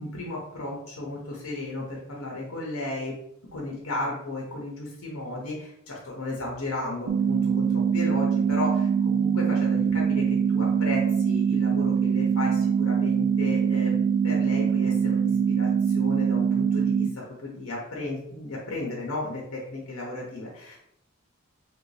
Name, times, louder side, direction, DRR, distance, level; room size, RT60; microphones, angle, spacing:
voice 1, 0.0-3.1 3.5-13.9 14.2-17.1 17.4-20.8, left 2 dB, 90° left, -3 dB, 0.8 m, -34 dB
sound 1, 7.1-17.1, right 7 dB, 70° right, 0.4 m, -23 dB
3.0 x 2.6 x 3.2 m, 0.77 s
head